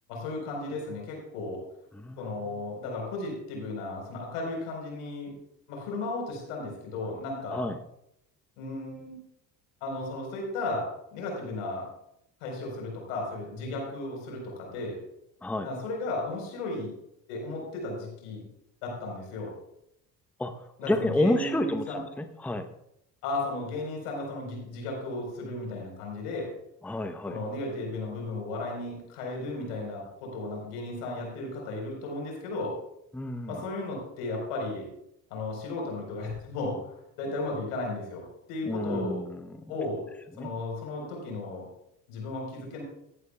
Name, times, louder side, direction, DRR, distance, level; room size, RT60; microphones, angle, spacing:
voice 1, 0.1-1.6 2.2-5.3 5.7-7.7 8.6-9.2 9.8-11.9 12.4-15.0 15.6-16.9 17.3-18.5 18.8-19.5 20.8-22.0 23.2-26.5 27.3-32.7 33.5-34.9 35.3-36.9 37.2-38.2 38.5-39.2 39.7-40.1 40.4-41.7 42.1-42.8, left 2 dB, 80° left, 0 dB, 4.2 m, -34 dB
voice 2, 1.9-2.6 7.5-7.8 15.4-15.7 20.4-20.5 20.8-22.7 26.8-27.4 33.1-33.6 38.7-39.6 40.4-40.5, left 1 dB, 5° left, 8 dB, 0.8 m, -30 dB
16.5 x 11.0 x 2.3 m, 0.79 s
hypercardioid pair, 65°, 46 cm